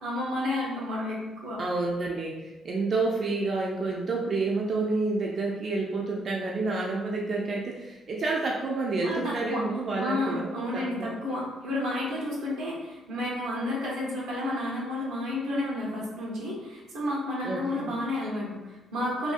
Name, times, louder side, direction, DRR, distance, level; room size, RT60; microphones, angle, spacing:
voice 1, 0.0-1.6 9.0-9.6 10.0-19.3, left 1 dB, 90° right, -5 dB, 0.8 m, -31 dB
voice 2, 1.6-11.1 17.4-17.9, right 3 dB, 45° right, -2 dB, 0.3 m, -29 dB
2.6 x 2.3 x 2.4 m, 1.1 s
cardioid pair, 90°, 0 cm